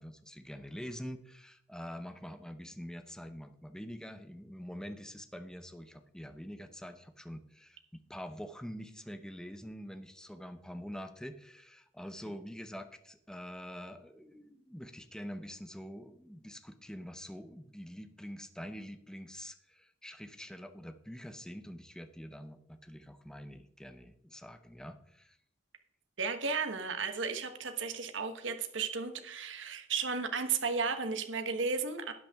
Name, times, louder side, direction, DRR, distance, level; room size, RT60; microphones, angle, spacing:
voice 1, 0.0-25.4, equal, 5° left, 9 dB, 0.7 m, -45 dB
voice 2, 26.2-32.1, right 5 dB, 70° right, 8 dB, 1.1 m, -34 dB
12.0 x 8.6 x 3.5 m, 0.70 s
head